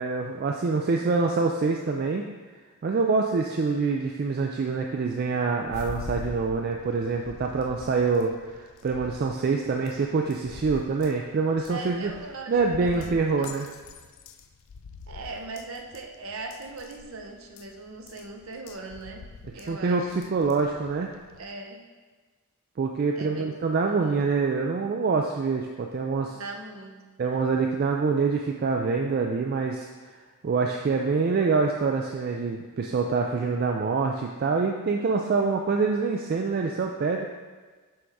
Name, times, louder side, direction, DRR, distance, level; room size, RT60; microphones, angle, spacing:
voice 1, 0.0-2.3 2.8-12.1 12.5-13.7 19.7-21.1 22.8-26.4 27.2-29.9 30.4-37.2, right 4 dB, 45° right, 2 dB, 0.3 m, -25 dB
sound 1, 5.7-21.5, left 5 dB, 60° left, 0.4 m, -44 dB
voice 2, 11.6-13.6 15.1-20.1 21.3-21.8 23.1-23.5 23.9-24.2 26.3-27.5, right 3 dB, 65° right, 2 dB, 0.7 m, -40 dB
6.2 x 3.5 x 4.7 m, 1.4 s
head